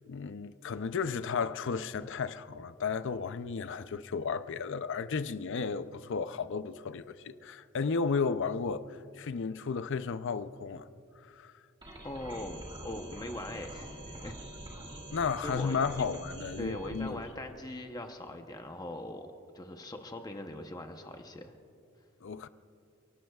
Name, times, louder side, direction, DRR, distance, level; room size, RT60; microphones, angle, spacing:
voice 1, 0.1-10.9 11.3-11.5 15.1-17.2 22.2-22.5, left 5 dB, 60° left, 0.5 m, -33 dB
sound 1, 11.8-17.1, right 1 dB, 20° right, 2.7 m, -45 dB
voice 2, 12.0-14.4 15.4-15.8 16.6-19.3 19.5-21.5, left 1 dB, 20° left, 0.8 m, -41 dB
29.5 x 18.0 x 2.4 m
head